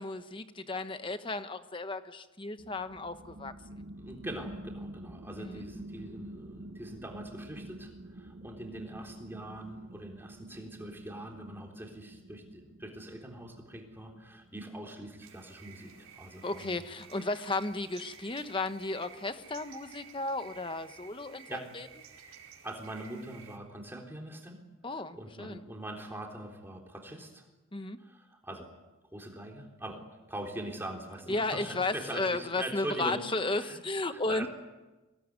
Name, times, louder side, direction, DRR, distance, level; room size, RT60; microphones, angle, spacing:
voice 1, 0.0-3.5 5.4-5.6 16.4-21.9 24.8-25.6 27.7-28.0 31.3-34.5, left 2 dB, 25° left, 10 dB, 1.1 m, -34 dB
sound 1, 2.6-14.7, right 1 dB, 60° right, 1.3 m, -48 dB
voice 2, 4.0-16.8 21.5-21.7 22.6-24.6 24.9-27.4 28.0-28.7 29.1-30.0 30.3-33.8 34.1-34.5, right 1 dB, 10° right, 1 dB, 3.6 m, -42 dB
sound 2, 15.2-23.6, right 7 dB, 75° right, 4.5 m, -54 dB
24.0 x 18.0 x 9.7 m, 1.1 s
head